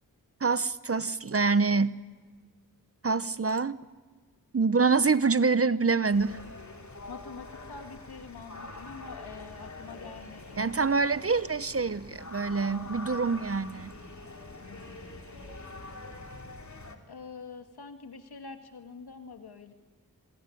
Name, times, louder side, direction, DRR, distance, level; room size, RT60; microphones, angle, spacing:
voice 1, 0.4-2.0 3.0-3.8 4.5-6.4 10.6-13.9, right 4 dB, 40° right, 15 dB, 0.9 m, -26 dB
sound 1, 6.1-17.0, left 2 dB, 50° left, 3.3 m, -44 dB
voice 2, 7.1-10.7 14.6-15.6 17.0-19.7, left 4 dB, 85° left, 6 dB, 2.1 m, -46 dB
26.5 x 20.0 x 9.2 m, 1.3 s
cardioid pair, 40°, 38 cm